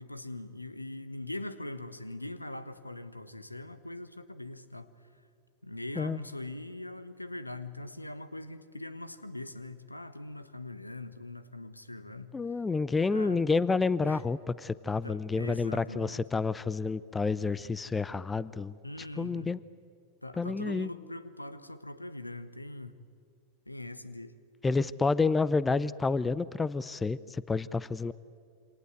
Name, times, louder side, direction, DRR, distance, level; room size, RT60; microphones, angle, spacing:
voice 1, 0.0-5.2 5.6-12.4 13.1-13.4 14.0-14.2 15.0-16.2 18.8-19.5 20.2-22.9 23.7-24.3, left 2 dB, 85° left, 13 dB, 1.2 m, -42 dB
voice 2, 12.3-18.8 19.2-19.6 20.4-20.9 24.6-28.1, left 4 dB, 15° left, 19 dB, 0.7 m, -29 dB
28.0 x 26.0 x 8.2 m, 2.2 s
figure-of-eight pair, 90°, 0 cm